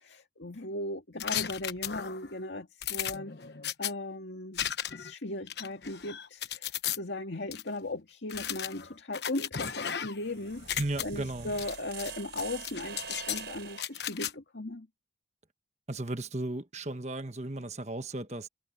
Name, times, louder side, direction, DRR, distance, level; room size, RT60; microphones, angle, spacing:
voice 1, 0.0-4.6 4.9-14.9, left 2 dB, 90° left, 2.0 m, -38 dB
sound 1, 1.2-2.3 2.8-3.9 4.6-5.1 5.5-7.0 7.5-7.6 8.3-10.3 10.6-11.0 11.6-12.1 12.4-13.4 13.8-14.3, left 9 dB, 75° left, 1.1 m, -35 dB
sound 2, 10.2-14.0, right 6 dB, 85° right, 4.2 m, -44 dB
voice 2, 10.8-11.5 15.9-18.5, right 2 dB, 40° right, 1.4 m, -35 dB
head